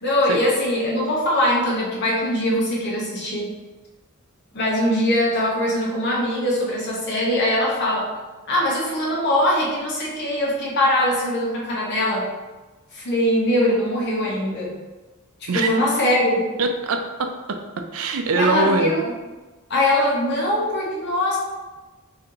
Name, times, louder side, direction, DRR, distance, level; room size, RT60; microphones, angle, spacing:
voice 1, 0.0-3.5 4.5-8.1 8.5-12.3 12.9-14.8 15.4-16.4 18.3-19.1 19.7-21.4, left 1 dB, 50° left, -4 dB, 1.0 m, -22 dB
voice 2, 16.6-19.0, right 3 dB, 70° right, 5 dB, 0.4 m, -23 dB
3.2 x 2.8 x 3.8 m, 1.2 s
head